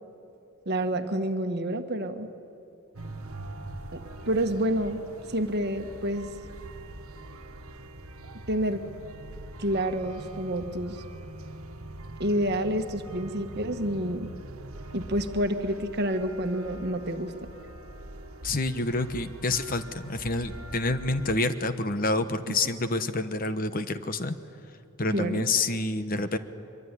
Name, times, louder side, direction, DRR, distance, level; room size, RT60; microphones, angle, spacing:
voice 1, 0.6-2.3 3.9-4.0 4.3-5.0 5.3-6.3 8.5-8.8 9.6-11.0 12.2-14.3 14.9-17.3 25.1-25.4, right 1 dB, 45° right, 7 dB, 1.6 m, -28 dB
sound 1, 2.9-21.4, right 1 dB, 70° right, 1.5 m, -43 dB
voice 2, 18.4-24.4 25.0-26.4, left 2 dB, 40° left, 11 dB, 1.1 m, -28 dB
24.0 x 23.5 x 9.9 m, 2.7 s
head